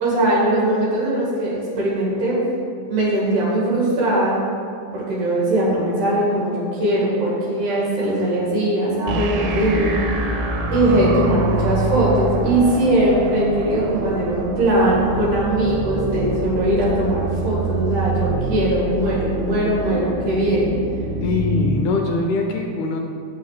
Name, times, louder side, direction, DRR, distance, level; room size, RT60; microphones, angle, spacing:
voice 1, 0.0-2.4 2.9-4.4 4.9-9.9 10.7-20.7, right 1 dB, 55° right, -5 dB, 2.9 m, -20 dB
sound 1, 9.1-21.8, right 2 dB, 90° right, 2.7 m, -25 dB
voice 2, 21.2-23.0, left 3 dB, 80° left, 2 dB, 2.4 m, -22 dB
6.4 x 5.8 x 7.2 m, 2.4 s
omnidirectional pair, 4.7 m